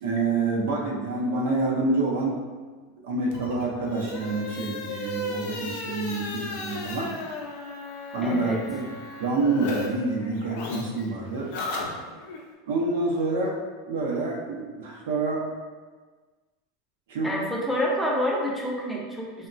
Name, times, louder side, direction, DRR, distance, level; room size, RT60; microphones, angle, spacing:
voice 1, 0.0-2.4 3.0-7.1 8.1-8.9 9.2-11.5 12.7-13.6 13.9-15.5 17.1-17.3, right 3 dB, 90° right, -2 dB, 0.5 m, -27 dB
sound 1, 3.3-9.9 10.1-12.4, left 2 dB, 65° left, 0.5 m, -35 dB
voice 2, 8.2-8.6 17.2-19.5, equal, ahead, -3 dB, 0.3 m, -28 dB
3.0 x 2.1 x 2.5 m, 1.4 s
supercardioid pair, 155°, 0 cm